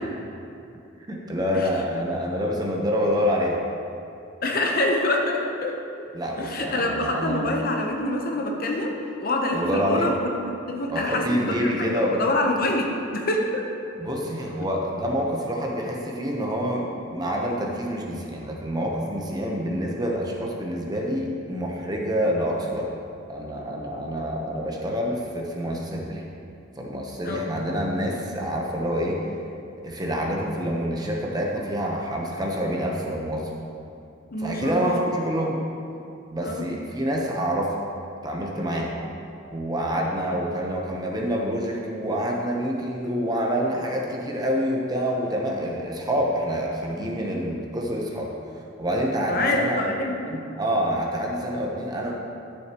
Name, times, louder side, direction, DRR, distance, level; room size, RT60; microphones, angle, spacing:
voice 1, 1.1-3.6 6.1-7.4 9.5-10.1 10.9-12.2 14.0-22.9 23.3-26.2 26.8-29.2 29.8-33.5 34.4-35.6 36.3-37.8 38.2-38.9 39.5-48.3 48.8-49.9 50.2-52.1, equal, 20° right, -1 dB, 0.9 m, -27 dB
voice 2, 4.4-5.8 6.4-8.9 9.2-10.4 10.7-13.6 27.2-27.4 34.3-34.9 36.4-36.7 38.7-38.9 49.3-50.4, left 1 dB, 45° left, 1 dB, 0.8 m, -26 dB
12.5 x 6.8 x 3.0 m, 2.6 s
head